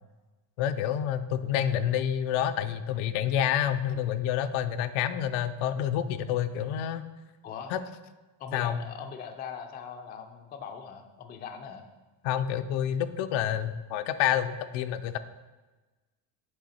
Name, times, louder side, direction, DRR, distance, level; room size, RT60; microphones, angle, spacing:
voice 1, 0.6-7.0 7.7-7.8 8.5-8.8 12.2-15.2, left 10 dB, 70° left, 10 dB, 0.6 m, -28 dB
voice 2, 8.4-11.9, left 7 dB, 20° left, 5 dB, 0.3 m, -41 dB
7.8 x 3.2 x 4.1 m, 1.2 s
cardioid pair, 120°, 49 cm